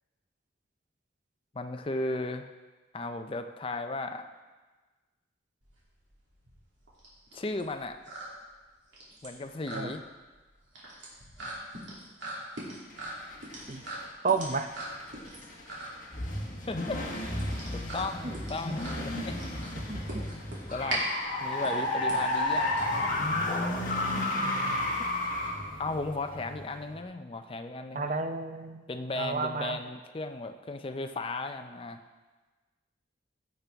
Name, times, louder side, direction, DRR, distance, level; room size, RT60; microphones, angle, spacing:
voice 1, 1.5-2.5 2.9-4.3 7.3-8.0 9.2-10.0 16.6-17.0 17.7-19.4 20.7-21.0 21.4-23.1 24.4-24.9 25.8-28.2 28.9-32.0, left 2 dB, 30° left, 7 dB, 0.5 m, -36 dB
sound 1, 5.6-23.4, right 1 dB, 75° right, 2.8 m, -41 dB
sound 2, 12.9-14.0 14.4-27.0, left 1 dB, 45° left, 1.6 m, -32 dB
voice 2, 14.2-14.7 18.2-18.3 19.0-19.3 19.8-20.2 24.2-24.5 27.9-28.8 29.2-29.8, right 4 dB, 40° right, 8 dB, 0.5 m, -32 dB
14.5 x 6.8 x 3.5 m, 1.3 s
head